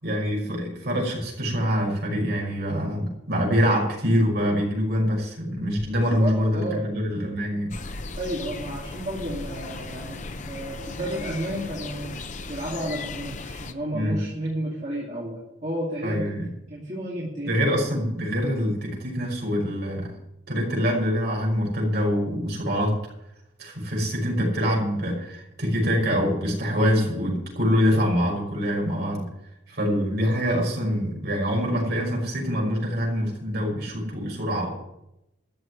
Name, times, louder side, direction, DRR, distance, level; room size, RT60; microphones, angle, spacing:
voice 1, 0.0-7.7 13.9-14.2 16.0-16.5 17.4-20.1 20.5-22.9 23.6-29.3 29.7-34.8, equal, 50° right, -1 dB, 5.6 m, -25 dB
voice 2, 6.1-6.8 8.2-10.2 10.5-12.2 12.5-16.2 16.7-17.6, right 1 dB, 35° right, -6 dB, 2.6 m, -32 dB
sound 1, 7.7-13.7, left 3 dB, 35° left, 0.7 m, -36 dB
13.5 x 6.5 x 9.5 m, 0.87 s
head